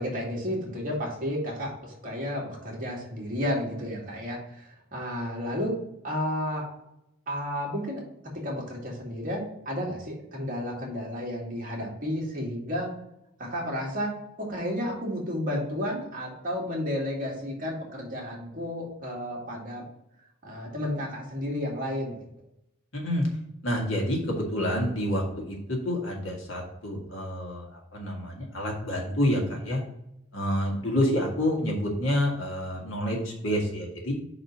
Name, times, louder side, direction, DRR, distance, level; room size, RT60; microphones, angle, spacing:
voice 1, 0.0-5.8 6.0-6.7 7.3-8.0 8.3-12.9 13.4-14.1 14.4-19.8 20.4-22.2, equal, 40° right, -2 dB, 2.1 m, -32 dB
voice 2, 22.9-23.2 23.6-29.8 30.3-34.1, left 1 dB, 65° left, 0 dB, 1.9 m, -28 dB
5.2 x 4.2 x 5.9 m, 0.82 s
head